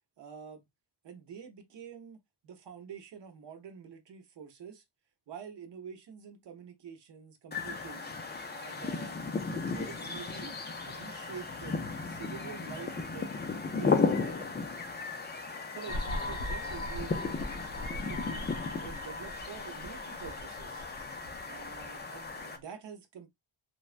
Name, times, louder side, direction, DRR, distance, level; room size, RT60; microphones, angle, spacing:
voice 1, 0.2-0.7 1.0-4.8 5.3-8.1 8.5-9.2 9.4-10.6 10.8-14.5 15.7-17.4 17.8-18.4 18.7-20.8 21.5-23.3, right 7 dB, 60° right, 0.8 m, -47 dB
sound 1, 7.5-22.6, left 4 dB, 25° left, 0.4 m, -35 dB
sound 2, 15.9-22.6, left 2 dB, 75° left, 1.0 m, -40 dB
3.2 x 2.2 x 2.4 m
wide cardioid pair, 155°, 49 cm